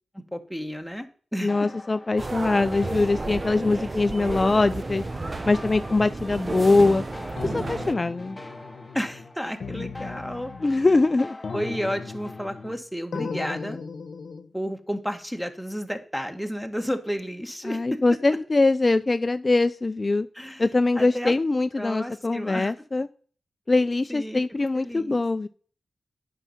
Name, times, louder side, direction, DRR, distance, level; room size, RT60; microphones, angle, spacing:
voice 1, 0.1-1.1 1.3-1.5 8.9-10.9 11.5-13.8 14.5-18.2 20.3-20.6 21.0-21.3 21.8-22.7 24.1-24.4 24.7-25.1, equal, ahead, 6 dB, 1.6 m, -32 dB
voice 2, 1.4-5.0 5.5-7.0 7.4-8.4 10.6-11.4 17.6-20.3 20.6-23.1 23.7-25.5, left 3 dB, 40° left, 11 dB, 0.4 m, -22 dB
sound 1, 1.5-12.8, left 2 dB, 25° left, 0.9 m, -45 dB
sound 2, 2.2-7.9, right 2 dB, 40° right, 0.7 m, -32 dB
sound 3, 7.4-9.3 9.6-11.1 11.4-12.8 13.1-14.5, left 4 dB, 75° left, 1.0 m, -36 dB
8.9 x 5.7 x 5.8 m, 0.43 s
cardioid pair, 50°, 0 cm